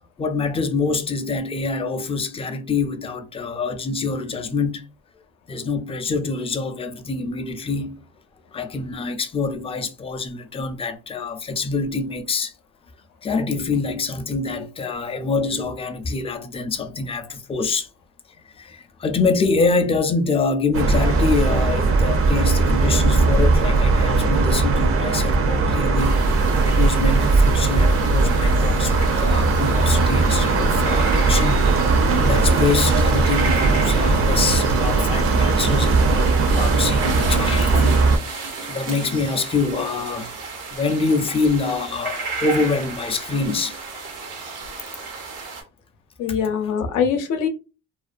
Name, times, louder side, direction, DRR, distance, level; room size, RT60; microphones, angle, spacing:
voice 1, 0.2-4.9 5.5-8.0 8.5-12.5 13.2-17.9 18.6-31.6 31.9-38.4 38.7-40.3 40.7-43.8, left 4 dB, 20° left, 0.4 m, -25 dB
sound 1, 20.7-38.2, right 3 dB, 45° right, 0.5 m, -18 dB
sound 2, 26.0-45.6, right 4 dB, 85° right, 0.9 m, -33 dB
voice 2, 46.2-47.5, left 7 dB, 85° left, 0.6 m, -22 dB
2.4 x 2.2 x 2.5 m
cardioid pair, 90°, 30 cm